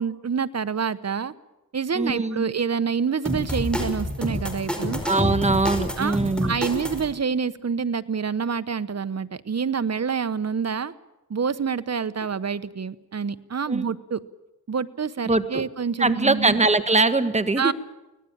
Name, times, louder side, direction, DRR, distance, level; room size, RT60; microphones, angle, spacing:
voice 1, 0.0-1.3 1.7-5.0 6.0-10.9 11.3-14.2 14.7-16.6 17.6-17.7, right 6 dB, 40° right, 14 dB, 1.1 m, -27 dB
voice 2, 1.9-2.5 5.0-6.5 13.7-13.9 15.3-15.6 16.0-17.7, right 3 dB, 20° right, 10 dB, 1.6 m, -22 dB
sound 1, 3.3-7.1, equal, ahead, 5.1 m, -28 dB
24.5 x 18.0 x 8.8 m, 1.0 s
cardioid pair, 75°, 38 cm